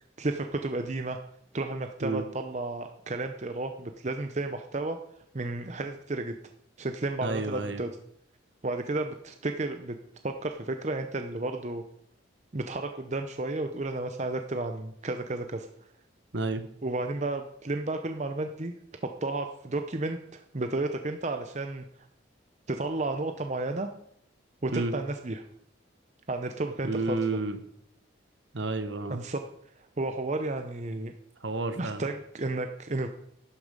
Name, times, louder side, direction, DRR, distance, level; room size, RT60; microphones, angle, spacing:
voice 1, 0.2-1.2 1.5-5.0 5.3-6.4 6.8-7.9 8.6-10.0 10.2-11.8 12.5-15.7 16.8-18.7 19.0-20.2 20.5-21.8 22.7-23.9 24.6-25.4 26.3-27.4 29.1-29.5 30.0-31.1 31.7-33.1, right 2 dB, 35° right, 6 dB, 0.7 m, -32 dB
voice 2, 7.2-7.8 16.3-16.6 24.7-24.9 26.8-27.6 28.5-29.2 31.4-32.0, right 2 dB, 65° right, 9 dB, 1.3 m, -30 dB
11.5 x 11.5 x 5.2 m, 0.73 s
head